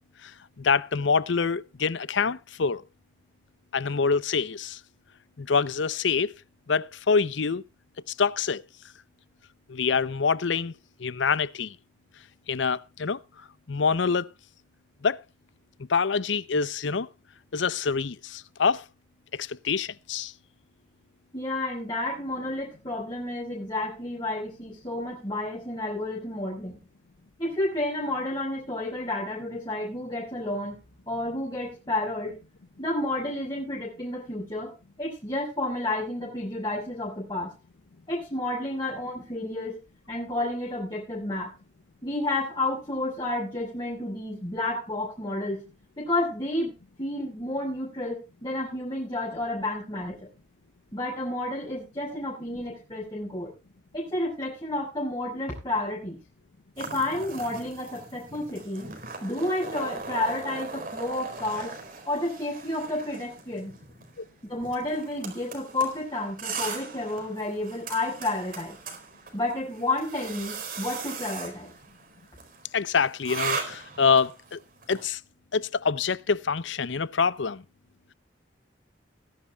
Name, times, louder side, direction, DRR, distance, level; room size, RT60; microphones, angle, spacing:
voice 1, 0.6-2.8 3.7-4.8 5.4-6.3 6.7-7.6 8.2-8.6 9.7-10.7 11.0-11.8 12.5-13.2 13.7-14.3 15.0-15.2 15.9-17.1 17.5-18.8 19.4-20.3 72.7-74.6 74.9-75.2 75.5-77.6, left 5 dB, 80° left, 0.7 m, -25 dB
voice 2, 21.3-26.8 27.4-30.8 31.1-32.4 32.8-34.7 35.0-37.5 38.1-39.8 40.1-41.5 42.0-45.6 46.0-46.7 47.0-50.3 50.9-53.5 53.9-56.2 56.8-58.9 59.2-61.8 62.1-63.7 64.5-68.8 69.3-71.7, left 1 dB, 25° left, 5.7 m, -31 dB
sound 1, 56.8-75.1, right 4 dB, 50° right, 4.2 m, -39 dB
20.5 x 11.0 x 2.3 m
head